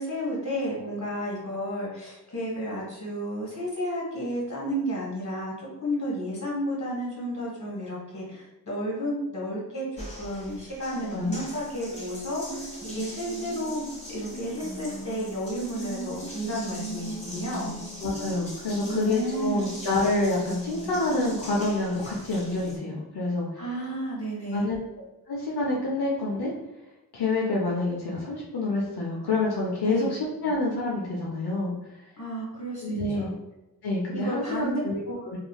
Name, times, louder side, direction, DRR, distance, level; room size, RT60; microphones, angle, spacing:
voice 1, 0.0-17.8 18.9-19.7 23.6-24.7 29.8-30.1 32.2-33.3 34.1-35.4, equal, 45° left, -5 dB, 1.5 m, -32 dB
Water tap faucet, 10.0-22.8, right 1 dB, 20° left, 1.3 m, -38 dB
voice 2, 18.0-23.6 24.5-24.8 25.3-26.5 27.1-32.0 32.8-33.3 33.8-35.4, left 2 dB, 80° left, -4 dB, 0.6 m, -27 dB
3.1 x 2.5 x 2.3 m, 0.98 s
wide cardioid pair, 40°, 38 cm